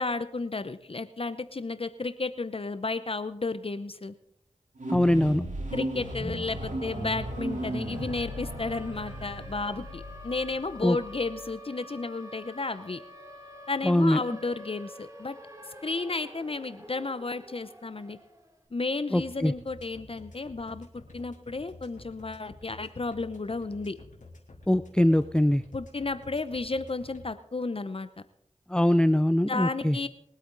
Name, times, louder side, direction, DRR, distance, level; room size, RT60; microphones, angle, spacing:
voice 1, 0.0-4.1 5.7-13.0 13.7-15.4 15.8-18.2 18.7-23.9 25.7-28.1 29.5-30.1, left 3 dB, 50° left, 12 dB, 0.7 m, -33 dB
sound 1, 4.8-11.4, right 1 dB, 90° right, 3.1 m, -36 dB
voice 2, 4.9-5.4 10.8-11.0 13.8-14.2 19.1-19.5 24.7-25.6 28.7-30.0, left 1 dB, 5° left, 13 dB, 0.5 m, -22 dB
Siren, 6.6-18.6, equal, 25° right, 2.9 m, -48 dB
sound 2, 19.2-27.2, left 3 dB, 85° left, 2.9 m, -49 dB
22.5 x 8.5 x 3.9 m, 0.72 s
cardioid pair, 40°, 13 cm